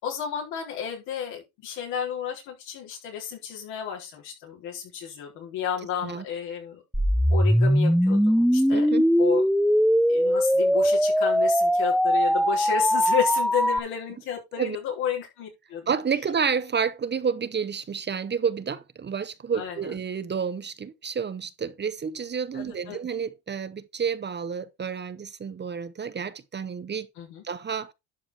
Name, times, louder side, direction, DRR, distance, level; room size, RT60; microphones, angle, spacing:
voice 1, 0.0-6.8 7.3-8.9 9.2-9.4 10.1-15.9 19.5-19.9 22.5-23.0 27.2-27.4, left 8 dB, 85° left, 4.4 m, -32 dB
sound 1, 6.9-13.8, equal, ahead, 0.5 m, -21 dB
voice 2, 8.7-9.0 14.6-14.8 15.9-27.1 27.4-27.9, right 6 dB, 30° right, 0.9 m, -30 dB
11.5 x 4.9 x 4.3 m
supercardioid pair, 90°, 37 cm